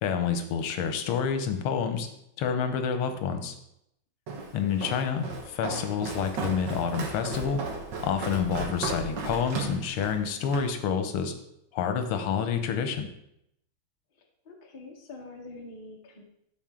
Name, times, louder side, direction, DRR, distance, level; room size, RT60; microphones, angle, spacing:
voice 1, 0.0-2.1 2.4-3.5 4.5-7.6 8.0-11.3 11.7-13.1, left 7 dB, 85° left, 7 dB, 1.7 m, -28 dB
Walk footsteps, 4.3-10.7, right 3 dB, 60° right, 1.7 m, -35 dB
voice 2, 14.5-16.2, left 2 dB, 30° left, 0 dB, 1.0 m, -45 dB
13.5 x 4.4 x 3.7 m, 0.78 s
omnidirectional pair, 2.4 m